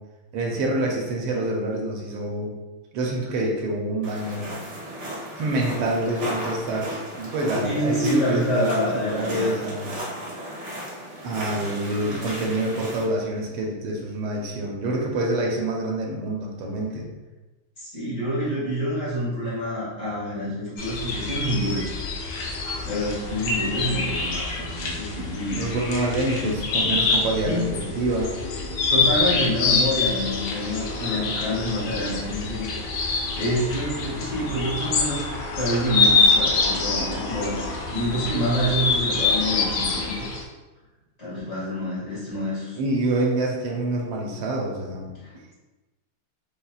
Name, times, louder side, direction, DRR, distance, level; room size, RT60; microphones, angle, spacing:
voice 1, 0.3-2.6 2.9-4.5 5.3-9.9 11.2-17.1 25.6-28.3 42.8-45.1, right 1 dB, 80° right, -1 dB, 1.5 m, -26 dB
sound 1, 4.0-13.0, right 1 dB, 50° right, 0.8 m, -35 dB
voice 2, 7.6-9.6 12.0-12.2 17.8-21.9 22.8-25.6 26.4-26.5 27.4-27.7 28.9-32.8 33.3-35.2 35.6-40.2 41.2-42.8 45.2-45.5, equal, 35° left, -10 dB, 1.6 m, -27 dB
sound 2, 20.8-40.4, left 4 dB, 85° left, 1.6 m, -25 dB
5.3 x 2.3 x 2.3 m, 1.1 s
omnidirectional pair, 2.4 m